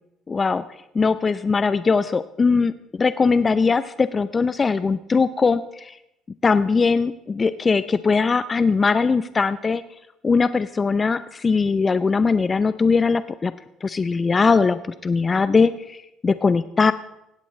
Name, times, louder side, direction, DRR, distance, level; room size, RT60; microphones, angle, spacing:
voice 1, 0.3-0.6 0.9-6.0 6.4-9.8 10.2-13.5 13.8-16.9, left 4 dB, 30° left, 14 dB, 0.5 m, -20 dB
18.0 x 16.0 x 3.2 m, 0.86 s
supercardioid pair, 75°, 0 cm